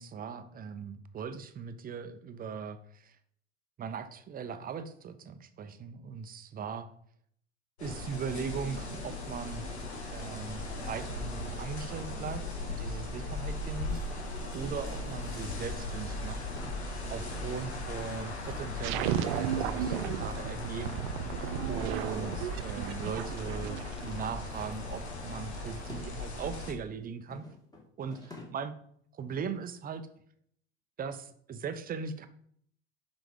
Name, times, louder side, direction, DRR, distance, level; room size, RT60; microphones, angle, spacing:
voice 1, 0.0-3.2 3.8-6.9 7.8-9.7 10.1-14.0 14.5-16.4 17.1-27.5 28.0-28.7 29.1-30.0 31.0-32.3, right 6 dB, 25° right, 10 dB, 0.6 m, -39 dB
sound 1, 7.8-26.7, left 2 dB, 90° left, 1.3 m, -38 dB
sound 2, 13.9-20.5 20.9-21.2 21.5-23.7 23.9-26.1 26.4-28.7 29.0-29.2 29.6-29.7, left 3 dB, 10° left, 1.5 m, -55 dB
sound 3, 18.8-24.2, right 10 dB, 65° right, 0.5 m, -34 dB
5.6 x 4.9 x 3.6 m, 0.65 s
hypercardioid pair, 80°, 32 cm